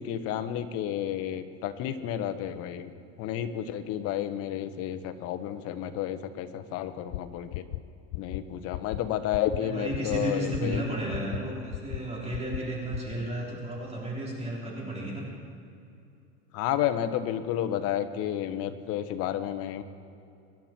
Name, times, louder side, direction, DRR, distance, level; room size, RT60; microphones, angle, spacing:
voice 1, 0.0-2.9 3.2-7.6 8.1-10.8 16.5-19.8, left 10 dB, 50° left, 9 dB, 1.2 m, -31 dB
sound 1, 7.1-7.2 7.5-7.8 8.1-8.4 8.7-9.0 9.3-9.6 9.9-10.2 10.5-10.8 11.1-11.4 11.7-12.0 12.3-12.6 12.9-13.1, left 19 dB, 85° left, 0.5 m, -34 dB
voice 2, 9.6-15.3, right 1 dB, 20° right, -3 dB, 3.7 m, -33 dB
24.5 x 11.0 x 4.5 m, 2.6 s
supercardioid pair, 135°, 30 cm